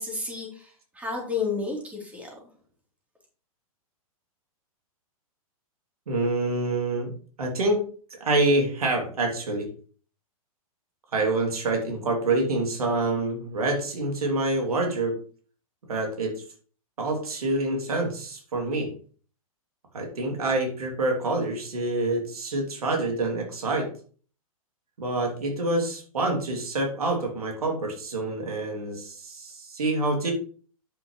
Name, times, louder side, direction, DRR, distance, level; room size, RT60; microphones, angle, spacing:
voice 1, 0.0-2.4, left 4 dB, 10° right, -1 dB, 3.6 m, -31 dB
voice 2, 6.1-7.1 7.4-7.8 8.2-9.7 11.1-15.2 15.9-16.3 17.0-18.9 19.9-23.9 25.0-30.3, right 2 dB, 85° right, 2 dB, 2.9 m, -26 dB
9.6 x 7.3 x 3.2 m, 0.42 s
hypercardioid pair, 125°, 19 cm